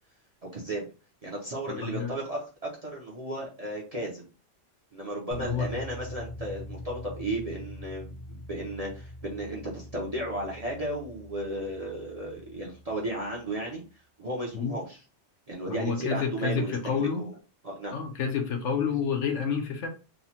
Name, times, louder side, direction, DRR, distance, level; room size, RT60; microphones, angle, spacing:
voice 1, 0.5-0.9 1.2-4.3 4.9-13.8 14.2-15.0 15.5-17.3 17.6-17.9, right 1 dB, 40° right, -3 dB, 0.5 m, -34 dB
voice 2, 1.7-2.1 5.3-5.7 14.5-14.8 15.7-17.2 17.9-19.9, left 6 dB, 75° left, 4 dB, 1.0 m, -29 dB
sound 1, 5.3-13.4, left 2 dB, 55° left, 1.0 m, -43 dB
3.0 x 2.1 x 2.8 m, 0.34 s
omnidirectional pair, 1.3 m